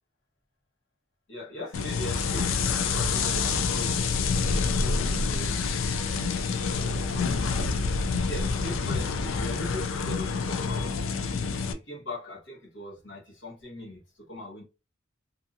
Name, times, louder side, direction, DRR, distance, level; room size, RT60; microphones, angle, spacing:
voice 1, 1.3-6.0 6.7-7.4 8.2-11.0 11.6-14.6, equal, 65° left, 1.3 m, -40 dB
sound 1, 1.7-11.7, left 4 dB, 80° left, 0.4 m, -27 dB
2.7 x 2.5 x 2.5 m
head